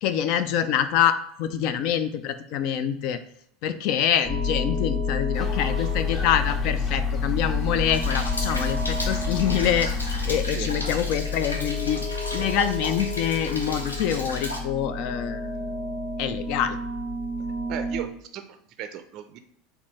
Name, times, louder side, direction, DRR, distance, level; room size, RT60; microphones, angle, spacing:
voice 1, 0.0-3.2 3.6-9.9 10.2-15.5 16.2-16.8, left 9 dB, 50° left, 11 dB, 0.3 m, -26 dB
sound 1, 4.2-18.0, left 4 dB, 10° left, 1.2 m, -29 dB
sound 2, 5.3-10.4, equal, 30° left, 0.8 m, -35 dB
Rain, 7.9-14.6, left 1 dB, 85° left, 0.6 m, -35 dB
voice 2, 17.7-19.4, right 9 dB, 45° right, 9 dB, 0.4 m, -36 dB
4.1 x 2.6 x 4.1 m, 0.69 s
figure-of-eight pair, 75°, 0 cm